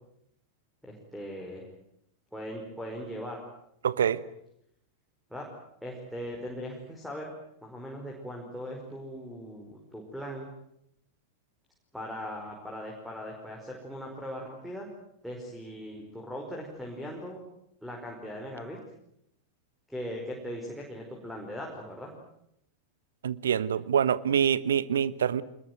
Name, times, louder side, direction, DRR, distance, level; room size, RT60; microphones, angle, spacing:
voice 1, 0.8-1.7 2.3-3.4 5.3-5.5 5.8-7.3 7.6-10.5 11.9-14.9 15.2-17.4 17.8-18.8 19.9-22.1, equal, ahead, -2 dB, 5.2 m, -39 dB
voice 2, 3.8-4.2 23.2-25.4, right 8 dB, 65° right, 18 dB, 1.1 m, -25 dB
25.5 x 21.0 x 9.5 m, 0.77 s
figure-of-eight pair, 90°, 0 cm